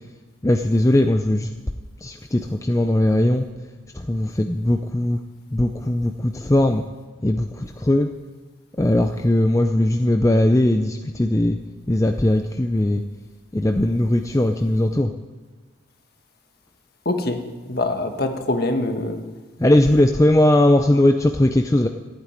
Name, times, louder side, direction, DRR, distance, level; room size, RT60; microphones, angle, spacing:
voice 1, 0.4-1.5 2.0-3.5 3.9-5.2 5.5-6.8 7.2-8.1 8.8-11.6 11.9-13.0 13.5-15.1 19.6-21.9, left 1 dB, 15° left, 5 dB, 0.5 m, -19 dB
voice 2, 17.0-19.2, left 2 dB, 50° left, 5 dB, 1.6 m, -24 dB
14.5 x 9.0 x 9.8 m, 1.3 s
head